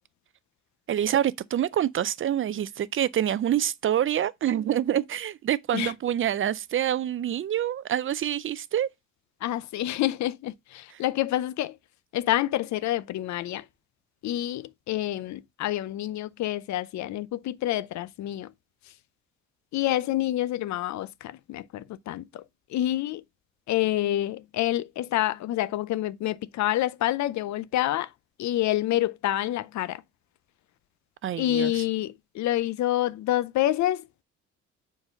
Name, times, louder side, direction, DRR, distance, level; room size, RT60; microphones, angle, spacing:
voice 1, 0.9-8.9 10.9-11.0 31.2-31.8, right 10 dB, 45° right, 0.4 m, -26 dB
voice 2, 9.4-11.8 12.1-13.6 14.2-18.5 19.7-22.4 22.7-23.2 23.7-28.1 28.4-30.0 31.4-34.0, left 14 dB, 65° left, 0.5 m, -27 dB
4.8 x 4.0 x 5.2 m
cardioid pair, 90°, 30 cm